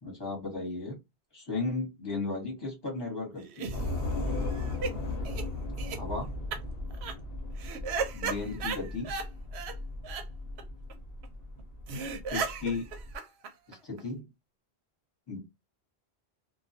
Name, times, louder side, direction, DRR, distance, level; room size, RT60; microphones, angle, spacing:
voice 1, 0.0-1.0 1.3-3.8 5.9-6.3 8.1-9.1 12.3-12.9 13.7-14.3 15.3-15.4, left 3 dB, 25° left, -2 dB, 1.1 m, -35 dB
sound 1, 3.4-4.9 5.2-5.4 5.8-6.0 6.5-6.6 6.9-7.1 7.6-9.3 9.5-9.7 10.0-10.2 10.6-10.7 10.9-11.0 11.2-11.3 11.6-11.7 11.9-14.0, right 5 dB, 85° right, 0.9 m, -36 dB
Train / Subway metro underground, 3.7-13.2, left 2 dB, 70° left, 0.9 m, -37 dB
2.2 x 2.2 x 2.6 m, 0.21 s
omnidirectional pair, 1.1 m